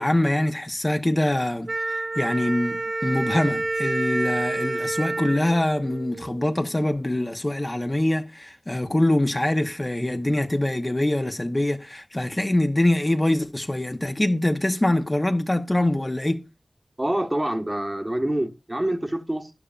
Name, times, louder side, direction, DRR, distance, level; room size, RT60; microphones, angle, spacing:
voice 1, 0.0-16.4, left 1 dB, 30° left, 1.0 m, -24 dB
Wind instrument woodwind instrument, 1.7-6.5, right 2 dB, 70° right, 2.1 m, -28 dB
voice 2, 17.0-19.5, right 1 dB, 25° right, 1.3 m, -26 dB
12.0 x 10.0 x 2.5 m
wide cardioid pair, 50°, 0 cm